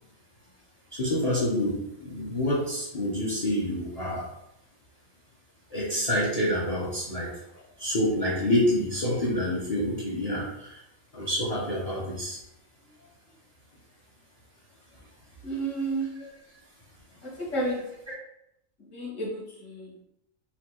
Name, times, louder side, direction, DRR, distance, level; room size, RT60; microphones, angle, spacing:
voice 1, 0.9-4.3 5.7-7.3 7.8-10.8 11.1-12.4 16.1-16.3 18.1-18.2, left 1 dB, 35° left, -5 dB, 0.8 m, -27 dB
voice 2, 15.4-16.2 17.2-17.9 18.9-20.0, right 2 dB, 70° left, -5 dB, 1.6 m, -31 dB
4.2 x 2.5 x 4.4 m, 0.80 s
omnidirectional pair, 1.4 m